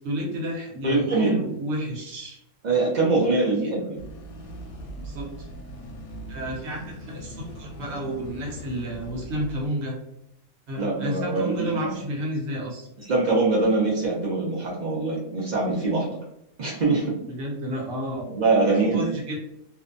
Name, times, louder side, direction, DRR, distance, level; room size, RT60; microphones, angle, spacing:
voice 1, 0.0-2.4 3.6-3.7 5.0-5.5 6.3-10.0 10.7-12.9 17.3-18.3 18.9-19.5, equal, 60° right, -2 dB, 1.0 m, -31 dB
voice 2, 0.8-1.4 2.6-4.0 10.8-12.0 13.0-16.2 16.6-17.1 18.3-19.1, right 3 dB, 75° right, -4 dB, 0.4 m, -23 dB
sound 1, 4.0-9.7, equal, 70° left, 0.9 m, -40 dB
2.6 x 2.1 x 2.5 m, 0.81 s
omnidirectional pair, 1.4 m